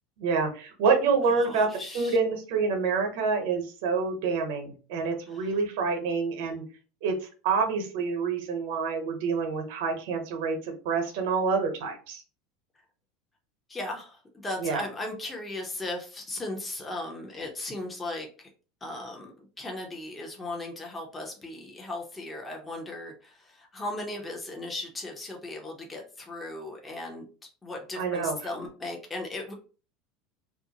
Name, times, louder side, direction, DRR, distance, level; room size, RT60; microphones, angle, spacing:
voice 1, 0.2-1.7 1.9-6.6 7.0-12.2 14.6-14.8 27.9-28.4, right 5 dB, 70° right, 4 dB, 0.9 m, -27 dB
voice 2, 1.3-2.2 5.3-5.5 13.7-18.5 18.8-27.3 27.6-29.5, left 2 dB, 15° left, 1 dB, 0.7 m, -37 dB
2.5 x 2.1 x 2.8 m, 0.36 s
supercardioid pair, 110°, 0 cm